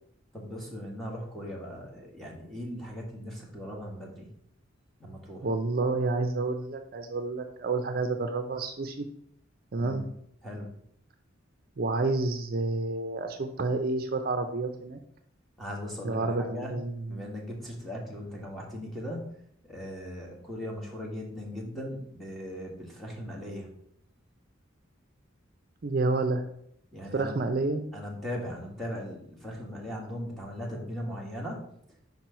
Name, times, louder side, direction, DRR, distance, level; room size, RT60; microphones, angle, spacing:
voice 1, 0.3-4.3 5.0-5.5 9.8-10.1 10.4-10.7 15.6-16.7 17.1-19.3 19.6-23.7 26.9-27.4 27.9-31.7, equal, ahead, -2 dB, 1.6 m, -38 dB
voice 2, 5.4-9.1 9.7-10.0 11.8-15.0 16.0-17.3 25.8-26.4 27.1-27.9, right 3 dB, 50° right, 7 dB, 0.5 m, -29 dB
5.4 x 4.5 x 5.7 m, 0.71 s
head